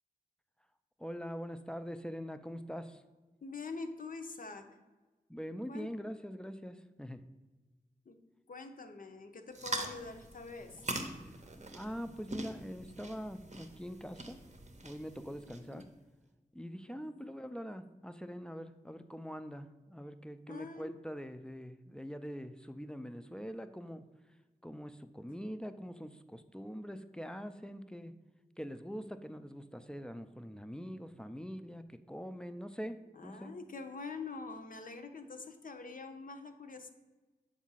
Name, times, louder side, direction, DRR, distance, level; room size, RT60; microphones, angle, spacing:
voice 1, 1.0-3.0 5.3-7.2 11.7-14.4 14.8-15.8 16.5-24.0 24.6-28.1 28.6-33.5, equal, 5° left, 10 dB, 0.3 m, -43 dB
voice 2, 3.4-4.6 5.7-5.9 8.1-8.2 8.5-10.8 12.1-12.2 15.5-15.8 16.9-17.3 20.5-20.9 33.2-36.9, left 4 dB, 60° left, 6 dB, 0.6 m, -45 dB
sound 1, 9.5-15.8, right 2 dB, 45° right, 0.7 m, -43 dB
7.3 x 2.4 x 5.5 m, 1.2 s
wide cardioid pair, 55°, 16 cm